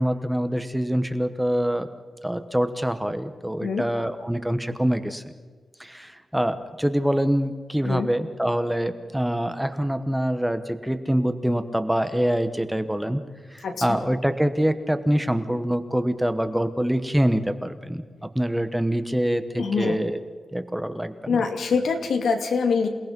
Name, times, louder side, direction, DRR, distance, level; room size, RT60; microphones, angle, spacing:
voice 1, 0.0-1.9 2.2-5.2 5.8-13.2 13.5-18.0 18.3-20.2 20.5-21.4, equal, 5° right, 9 dB, 1.1 m, -25 dB
voice 2, 13.6-14.0 19.6-20.0 21.3-22.9, left 5 dB, 90° left, 4 dB, 2.6 m, -24 dB
28.5 x 18.5 x 5.4 m, 1.5 s
wide cardioid pair, 165°, 0 cm